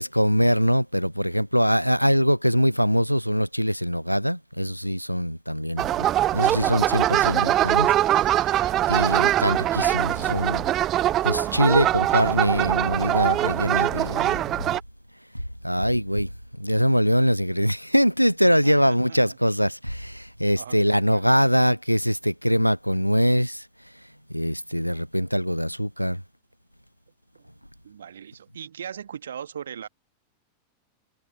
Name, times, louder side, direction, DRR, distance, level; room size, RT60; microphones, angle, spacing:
voice 1, 0.0-6.1 6.3-10.7 11.2-14.4 15.3-16.3 16.6-23.7 24.3-26.2, equal, 90° left, 0.7 m, -23 dB
sound 1, 5.8-14.8, right 13 dB, 30° right, 1.1 m, -22 dB
voice 2, 18.6-19.2 20.6-21.4 27.3-27.4 27.8-29.9, right 8 dB, 65° right, 1.4 m, -39 dB
figure-of-eight pair, 90°, 0 cm